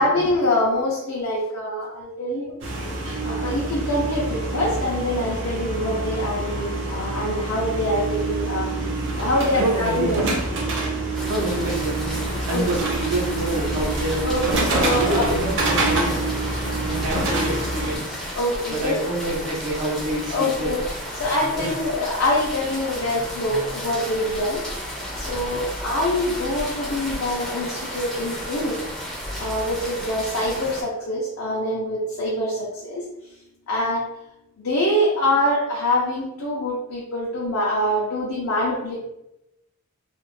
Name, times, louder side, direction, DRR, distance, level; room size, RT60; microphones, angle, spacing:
voice 1, 0.0-2.5 2.8-2.9 3.2-10.2 12.5-12.6 14.2-15.3 18.3-19.0 20.3-20.8 21.2-24.6 25.2-28.8 29.4-33.0 33.7-34.0 34.6-39.0, left 1 dB, 65° left, -5 dB, 0.5 m, -24 dB
sound 1, 2.6-18.0, right 2 dB, 55° right, 0.5 m, -26 dB
voice 2, 9.6-10.1 11.3-12.2 12.5-14.3 15.0-18.2 18.7-20.8 21.6-21.7, right 1 dB, 90° right, -1 dB, 0.7 m, -27 dB
sound 2, 11.1-30.8, equal, ahead, 0.4 m, -33 dB
2.4 x 2.0 x 3.1 m, 0.88 s
head